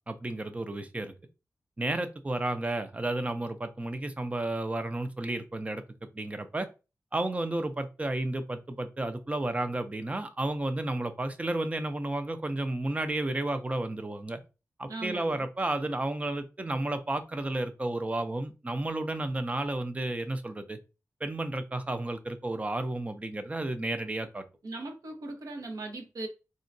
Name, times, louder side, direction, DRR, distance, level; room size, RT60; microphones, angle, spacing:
voice 1, 0.1-1.1 1.8-5.8 6.1-6.7 7.1-14.4 14.8-20.8 21.2-24.4, right 2 dB, 20° right, 0.4 m, -32 dB
voice 2, 14.9-15.5 24.6-26.3, right 2 dB, 70° right, 0.8 m, -39 dB
3.7 x 2.2 x 2.5 m
wide cardioid pair, 125°, 6 cm